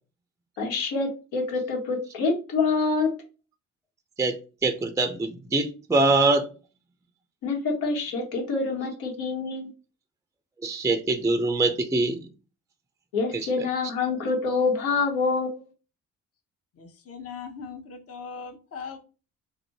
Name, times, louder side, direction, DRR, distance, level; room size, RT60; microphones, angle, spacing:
voice 1, 0.6-3.1 7.4-9.7 13.1-15.6, left 4 dB, 75° left, 1 dB, 1.4 m, -26 dB
voice 2, 4.2-6.5 10.6-12.3 13.3-13.7, right 2 dB, 10° right, 7 dB, 0.5 m, -24 dB
voice 3, 16.8-19.0, left 5 dB, 40° left, 4 dB, 0.9 m, -39 dB
2.7 x 2.5 x 4.1 m, 0.34 s
hypercardioid pair, 55°, 38 cm